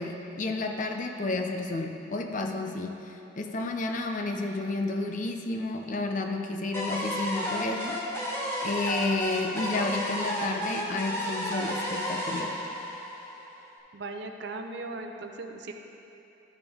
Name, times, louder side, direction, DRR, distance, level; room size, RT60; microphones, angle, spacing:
voice 1, 0.0-8.0 8.6-12.6, left 2 dB, 40° left, 4 dB, 0.5 m, -31 dB
sound 1, 6.7-13.7, equal, 15° left, 1.0 m, -32 dB
voice 2, 13.9-15.7, right 3 dB, 60° right, 4 dB, 0.6 m, -38 dB
12.5 x 5.2 x 3.5 m, 2.9 s
head